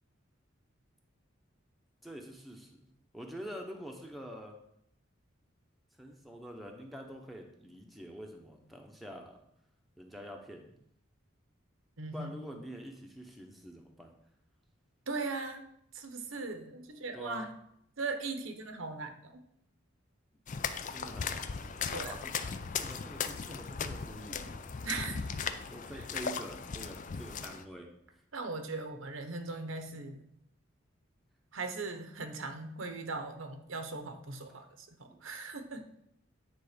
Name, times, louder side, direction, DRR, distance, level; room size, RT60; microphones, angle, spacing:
voice 1, 2.0-2.9 3.1-4.5 6.0-9.4 10.0-10.7 12.1-14.1 17.1-17.5 20.9-22.3 22.8-24.6 25.7-27.9 35.1-35.2, equal, ahead, 1 dB, 0.9 m, -46 dB
voice 2, 12.0-12.3 15.1-15.7 15.9-17.5 18.0-19.4 21.9-22.2 24.8-25.1 28.3-30.2 31.5-35.8, right 3 dB, 80° right, 6 dB, 1.0 m, -39 dB
sound 1, 20.5-27.6, left 6 dB, 40° left, 0.4 m, -37 dB
9.3 x 3.8 x 5.1 m, 0.72 s
head